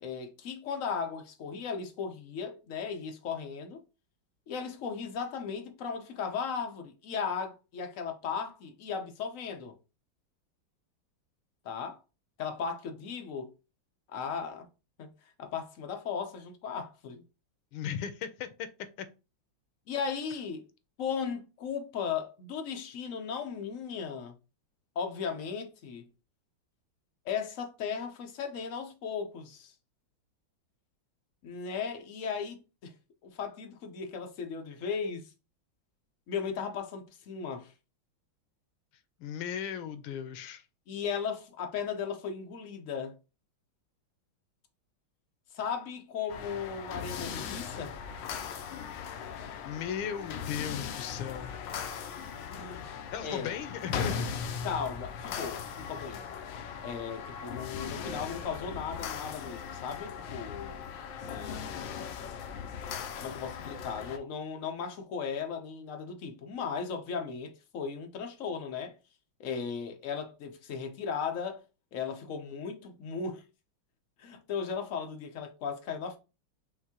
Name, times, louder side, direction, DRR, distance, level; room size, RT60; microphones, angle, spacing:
voice 1, 0.0-3.8 4.5-9.8 11.6-12.0 12.4-13.5 14.1-14.7 15.0-15.1 15.4-17.2 19.9-20.7 21.0-24.3 25.0-26.1 27.2-29.7 31.4-32.9 33.2-35.3 36.3-37.7 40.9-43.1 45.5-48.0 52.5-52.9 53.2-53.5 54.6-56.3 56.8-60.8 61.3-62.1 63.2-69.0 69.4-71.6 71.9-73.4 74.2-76.2, left 6 dB, 60° left, 0.9 m, -36 dB
voice 2, 17.7-18.7 19.0-19.1 39.2-40.6 49.6-51.5 53.1-54.2, left 8 dB, 90° left, 1.5 m, -36 dB
sound 1, 46.3-64.2, left 7 dB, 75° left, 1.2 m, -39 dB
5.8 x 2.7 x 2.8 m
omnidirectional pair, 2.2 m